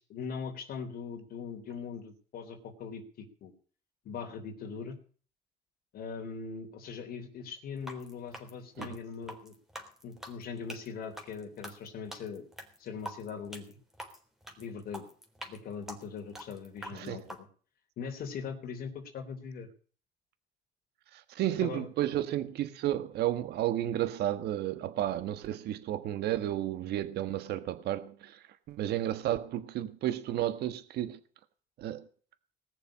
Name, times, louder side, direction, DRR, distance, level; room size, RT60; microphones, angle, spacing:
voice 1, 0.0-3.5 4.1-5.0 5.9-9.5 10.0-12.4 12.8-13.7 14.6-15.1 15.5-17.5 18.0-19.7 21.6-21.9, left 6 dB, 65° left, 3.6 m, -41 dB
sound 1, 7.8-17.4, equal, 5° right, 3.7 m, -45 dB
voice 2, 16.9-17.2 21.1-31.2 31.8-32.1, right 13 dB, 75° right, 1.4 m, -32 dB
19.5 x 6.9 x 8.5 m
cardioid pair, 110°, 17 cm